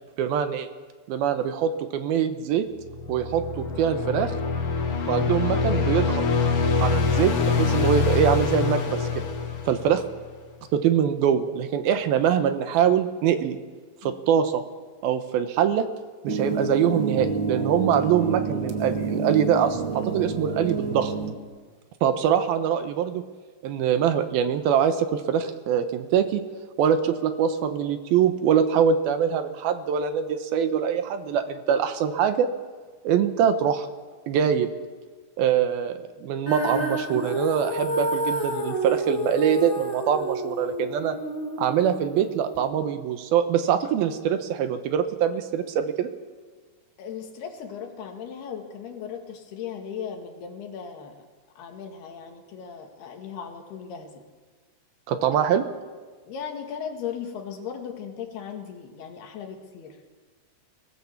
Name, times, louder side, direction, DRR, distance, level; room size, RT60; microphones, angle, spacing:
voice 1, 0.2-0.7 1.1-2.7 3.1-4.3 5.1-6.2 6.8-9.3 9.7-10.0 10.7-13.6 14.0-14.6 15.0-15.9 16.2-21.1 22.0-23.2 23.6-26.4 26.8-32.5 33.0-33.9 34.3-34.7 35.4-41.2 41.6-46.1 55.1-55.6, right 8 dB, 75° right, 9 dB, 2.7 m, -23 dB
sound 1, 2.8-10.2, left 4 dB, 45° left, 2.1 m, -25 dB
sound 2, 16.3-21.3, right 4 dB, 45° right, 1.8 m, -28 dB
Female singing, 36.5-42.7, right 1 dB, 15° left, 2.2 m, -30 dB
voice 2, 47.0-51.2 51.6-54.3 55.3-55.4 56.3-60.0, left 7 dB, 75° left, 4 dB, 3.8 m, -37 dB
23.5 x 17.5 x 7.2 m, 1.4 s
omnidirectional pair, 4.6 m